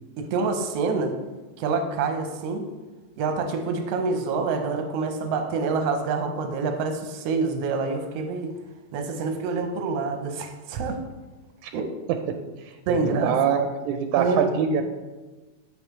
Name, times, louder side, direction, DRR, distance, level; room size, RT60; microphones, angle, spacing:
voice 1, 0.2-1.2 1.6-2.7 3.2-8.5 8.9-11.0 11.7-11.9 12.9-13.4 14.2-14.5, right 4 dB, 70° right, 5 dB, 1.7 m, -26 dB
voice 2, 12.6-14.8, right 7 dB, 90° right, 6 dB, 2.0 m, -25 dB
8.2 x 7.0 x 3.1 m, 1.2 s
omnidirectional pair, 3.4 m